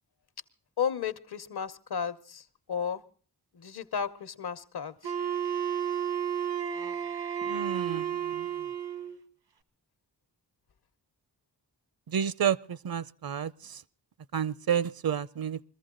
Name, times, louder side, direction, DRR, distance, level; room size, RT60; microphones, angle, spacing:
voice 1, 0.8-3.0 3.5-5.1, left 7 dB, 70° left, 1.0 m, -33 dB
Wind instrument woodwind instrument, 5.0-9.2, right 8 dB, 85° right, 1.5 m, -32 dB
voice 2, 7.4-8.5 12.1-13.8 14.3-15.6, right 8 dB, 60° right, 0.6 m, -30 dB
22.0 x 14.5 x 3.8 m
wide cardioid pair, 135°, 40 cm